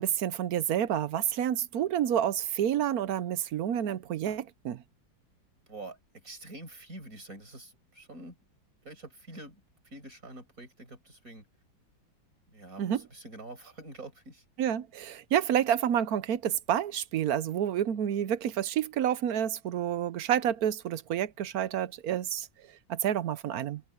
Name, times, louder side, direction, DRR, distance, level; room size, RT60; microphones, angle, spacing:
voice 1, 0.0-4.8 12.8-13.0 14.6-22.5 22.9-23.8, right 10 dB, 60° right, 1.1 m, -29 dB
voice 2, 5.7-8.4 8.8-11.5 12.5-14.4, right 2 dB, 45° right, 7.8 m, -46 dB
omnidirectional pair, 2.1 m